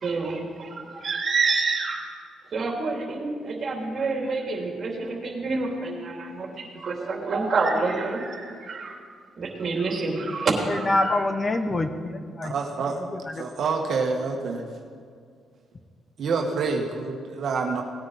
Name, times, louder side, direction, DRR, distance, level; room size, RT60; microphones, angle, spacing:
voice 1, 0.0-2.1 2.5-9.0 9.4-11.1, right 3 dB, 45° right, 0 dB, 2.9 m, -28 dB
voice 2, 10.7-12.5 13.1-13.4, left 2 dB, 30° left, 8 dB, 0.9 m, -26 dB
voice 3, 12.4-13.0 13.3-14.6 16.2-17.8, right 4 dB, 65° right, 1 dB, 1.4 m, -27 dB
18.5 x 9.6 x 4.1 m, 2.2 s
cardioid pair, 90°, 0 cm